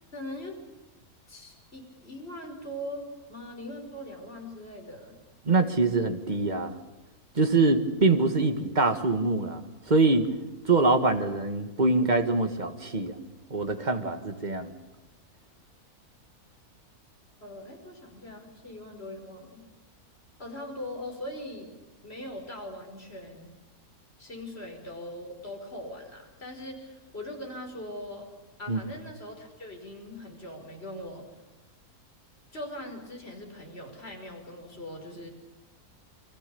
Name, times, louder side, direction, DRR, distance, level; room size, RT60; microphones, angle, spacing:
voice 1, 0.1-0.6 1.3-5.2 17.4-19.6 20.4-21.7 22.0-23.5 24.2-28.3 28.6-31.3 32.5-35.3, left 1 dB, 40° left, 2 dB, 5.7 m, -41 dB
voice 2, 5.5-6.8 7.4-10.3 10.6-13.2 13.5-14.7 28.7-28.8, right 3 dB, 30° right, 7 dB, 1.9 m, -24 dB
29.5 x 23.5 x 7.1 m, 1.0 s
omnidirectional pair, 1.6 m